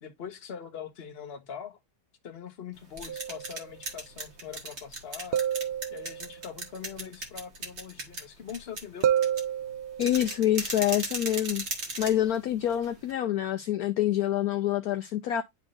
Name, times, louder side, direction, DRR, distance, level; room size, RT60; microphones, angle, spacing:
voice 1, 0.0-1.8 2.2-5.4 5.9-9.1, left 8 dB, 40° left, 1.2 m, -42 dB
sound 1, 2.7-13.1, right 2 dB, 45° right, 1.8 m, -38 dB
sound 2, 3.1-3.7 5.3-6.4 9.0-10.3, right 9 dB, 85° right, 0.5 m, -29 dB
voice 2, 10.0-11.6 12.0-15.4, left 12 dB, 70° left, 1.1 m, -26 dB
11.0 x 3.6 x 2.5 m
omnidirectional pair, 1.7 m